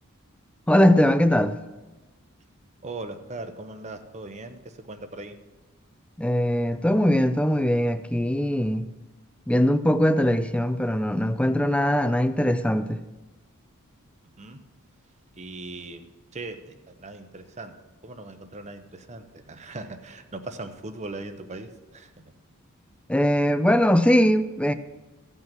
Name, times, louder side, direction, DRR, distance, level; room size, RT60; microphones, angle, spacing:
voice 1, 0.7-1.6 6.2-8.9 9.5-13.0 23.1-24.7, equal, 5° left, 0.4 m, -21 dB
voice 2, 2.8-5.4 14.4-14.6 15.4-17.7 18.0-22.3, right 2 dB, 30° right, 0.8 m, -39 dB
15.0 x 5.6 x 6.0 m
head